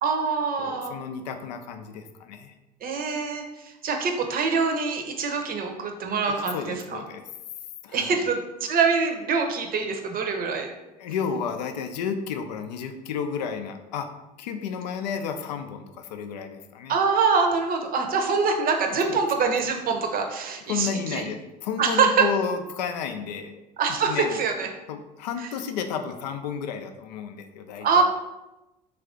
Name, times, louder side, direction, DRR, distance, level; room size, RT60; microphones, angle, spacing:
voice 1, 0.0-1.0 2.8-7.0 7.9-10.7 16.9-21.2 21.8-22.3 23.8-24.7 25.4-25.5 27.8-28.0, right 5 dB, 45° right, 4 dB, 0.7 m, -24 dB
voice 2, 0.6-2.5 6.3-7.2 7.8-8.2 11.0-14.1 14.4-17.0 19.1-19.2 20.7-23.6 24.1-24.4 24.9-28.0, left 6 dB, 80° left, 7 dB, 0.4 m, -32 dB
3.3 x 2.4 x 3.6 m, 0.98 s
hypercardioid pair, 65°, 21 cm